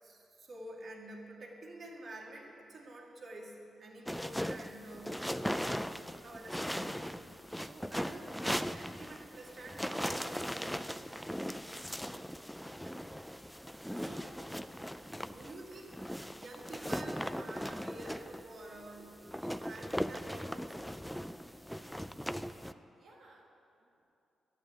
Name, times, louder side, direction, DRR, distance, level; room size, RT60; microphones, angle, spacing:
voice 1, 0.0-5.7 6.2-8.4 8.8-10.9 12.8-13.0 13.9-14.4 15.2-16.0 16.3-20.8 21.1-21.2, right 1 dB, 50° right, -1 dB, 2.1 m, -49 dB
sound 1, 4.1-22.7, equal, ahead, 0.4 m, -39 dB
voice 2, 22.2-24.1, right 2 dB, 70° right, -3 dB, 1.6 m, -64 dB
12.0 x 9.1 x 9.3 m, 2.9 s
cardioid pair, 120°, 0 cm